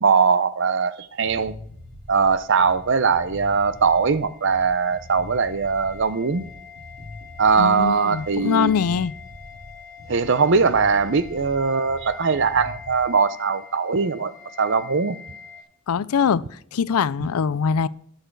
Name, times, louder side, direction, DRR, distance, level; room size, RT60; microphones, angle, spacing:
voice 1, 0.0-1.6 2.1-6.4 7.4-8.7 10.1-14.3 14.6-15.2, right 5 dB, 55° right, 0.6 m, -20 dB
sound 1, 1.0-13.1, left 1 dB, 85° right, 3.2 m, -42 dB
sound 2, 2.6-15.6, left 6 dB, 20° left, 3.3 m, -45 dB
voice 2, 7.6-9.1 15.9-16.4 16.7-17.9, left 6 dB, 90° left, 0.4 m, -22 dB
18.0 x 6.5 x 4.7 m
head